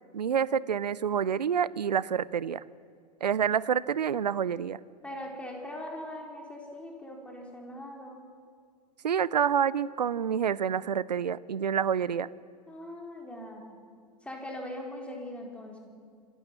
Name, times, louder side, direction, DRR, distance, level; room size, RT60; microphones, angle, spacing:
voice 1, 0.1-2.6 3.2-4.8 9.0-12.3, right 8 dB, 80° right, 21 dB, 0.6 m, -28 dB
voice 2, 5.0-8.2 12.7-13.6 14.2-15.8, left 1 dB, 5° left, 0 dB, 4.3 m, -41 dB
27.0 x 12.5 x 7.6 m, 2.1 s
figure-of-eight pair, 90°, 21 cm